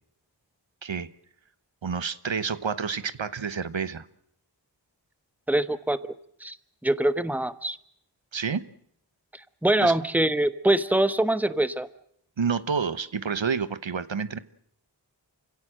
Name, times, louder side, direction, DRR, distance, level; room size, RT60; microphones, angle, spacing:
voice 1, 1.8-4.1 8.3-8.6 9.8-9.9 12.4-14.4, right 6 dB, 85° right, 13 dB, 1.2 m, -29 dB
voice 2, 5.5-6.0 6.4-6.6 6.8-7.8 9.6-11.9, right 1 dB, 5° right, 12 dB, 1.2 m, -23 dB
28.5 x 17.0 x 7.7 m, 0.71 s
wide cardioid pair, 50°, 45 cm